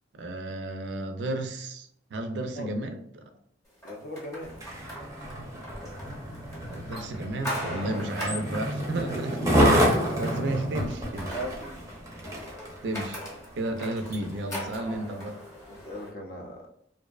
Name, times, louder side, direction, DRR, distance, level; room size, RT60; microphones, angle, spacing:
voice 1, 0.1-3.3 6.7-11.4 12.8-13.2 13.6-15.4, right 1 dB, 65° right, 6 dB, 0.4 m, -33 dB
voice 2, 3.8-4.5 7.8-8.0 11.3-11.8 15.7-16.6, equal, 50° left, 1 dB, 0.5 m, -38 dB
sound 1, 3.8-16.1, equal, 15° left, 0.8 m, -40 dB
Skateboard, 4.5-13.3 13.9-14.0, equal, 15° right, 0.5 m, -28 dB
2.6 x 2.1 x 2.3 m, 0.69 s
head